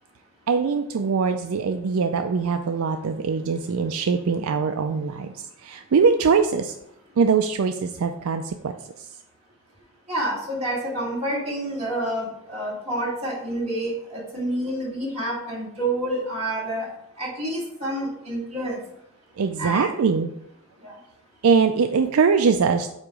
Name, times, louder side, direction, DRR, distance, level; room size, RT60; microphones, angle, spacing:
voice 1, 0.5-6.8 7.2-8.7 19.4-20.3 21.4-22.9, right 5 dB, 70° right, 7 dB, 0.4 m, -22 dB
voice 2, 10.1-16.9 17.2-18.8 19.6-19.9 20.8-20.9, right 1 dB, 30° right, -6 dB, 2.8 m, -28 dB
8.2 x 3.0 x 4.9 m, 0.78 s
head